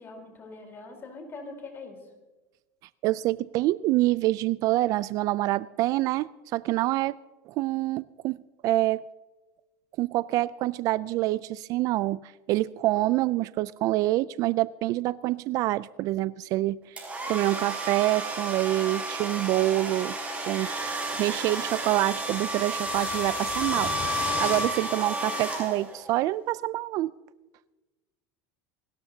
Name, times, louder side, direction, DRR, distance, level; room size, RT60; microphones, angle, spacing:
voice 1, 0.0-2.0, left 3 dB, 30° left, 3 dB, 3.8 m, -42 dB
voice 2, 3.0-7.2 7.5-9.0 10.0-20.2 20.5-20.7 21.1-27.1, right 17 dB, 50° right, 19 dB, 0.3 m, -26 dB
sound 1, 17.0-26.1, right 1 dB, 15° right, 5.7 m, -31 dB
27.5 x 13.0 x 2.8 m, 1.2 s
supercardioid pair, 130°, 8 cm